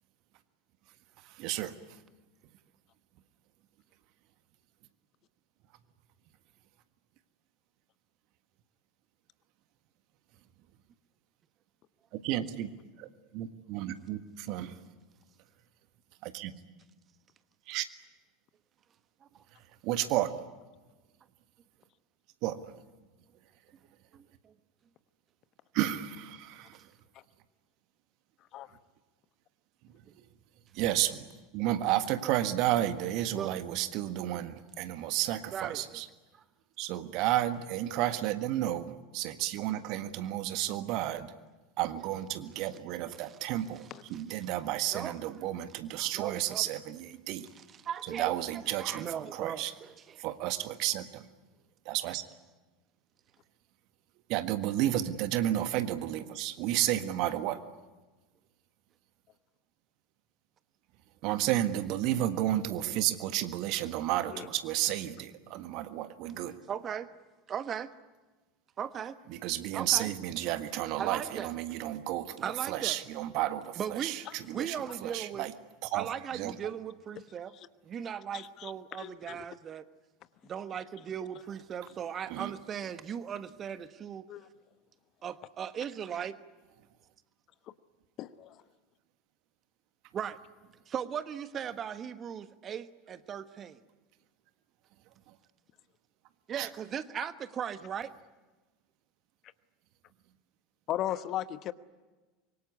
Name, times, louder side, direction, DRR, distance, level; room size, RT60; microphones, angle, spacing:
voice 1, 1.2-1.7 12.1-12.7 13.0-14.8 16.2-16.5 17.7-17.8 19.8-20.3 22.4-22.7 25.7-26.9 30.7-31.3 31.5-36.1 36.8-41.3 41.8-47.5 48.0-49.7 50.2-51.3 51.8-52.2 54.3-57.6 61.2-66.6 69.3-75.5 75.8-76.5 82.3-82.5 95.3-95.4 96.6-96.7, right 13 dB, 50° right, 1.6 m, -32 dB
voice 2, 24.1-24.5 33.3-33.5 35.5-35.8 36.3-36.4 43.1-43.5 44.9-45.2 46.1-46.7 47.8-48.3 48.8-50.2 66.7-67.1 67.5-67.9 68.8-69.2 69.7-70.1 71.0-71.5 72.4-73.0 73.8-74.2 74.5-75.5 75.9-77.5 77.8-79.8 80.4-84.3 85.2-86.4 90.1-90.4 90.9-93.8 96.5-98.1, right 8 dB, 30° right, 1.3 m, -38 dB
voice 3, 78.3-78.7 79.0-79.4 84.3-84.5 88.2-88.6 100.9-101.7, left 12 dB, 40° left, 1.1 m, -36 dB
25.5 x 23.5 x 9.7 m
figure-of-eight pair, 75°, 0 cm